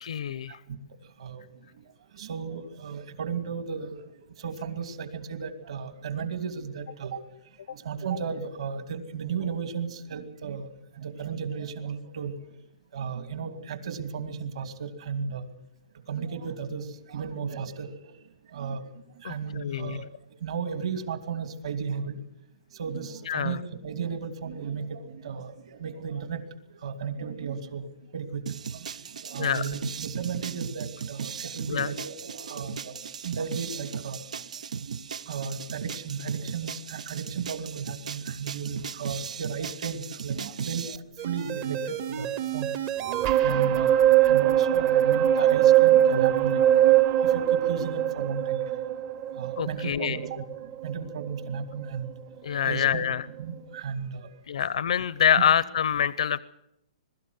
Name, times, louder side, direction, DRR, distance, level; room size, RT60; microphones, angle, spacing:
voice 1, 0.0-0.6 19.2-20.0 23.3-23.6 29.4-29.6 31.7-31.9 49.6-50.2 52.4-53.2 54.5-56.4, left 8 dB, 65° left, 18 dB, 0.7 m, -26 dB
voice 2, 2.1-4.0 4.4-7.2 7.7-10.7 11.0-12.3 12.9-15.5 16.1-18.2 18.5-18.9 19.2-20.0 20.4-22.2 22.7-26.4 26.8-27.9 28.1-28.4 28.7-28.8 29.2-33.0 33.2-34.2 34.8-35.0 35.3-42.7 43.4-48.6 49.3-50.4 50.8-52.1 52.6-53.1 53.4-54.3 55.3-55.4, right 6 dB, 60° right, 8 dB, 2.8 m, -34 dB
sound 1, 28.5-41.0, right 6 dB, 90° right, 0.7 m, -37 dB
sound 2, 41.2-51.5 51.9-52.0, right 11 dB, 25° right, 0.8 m, -22 dB
22.0 x 13.5 x 9.5 m, 0.81 s
hypercardioid pair, 175°, 4 cm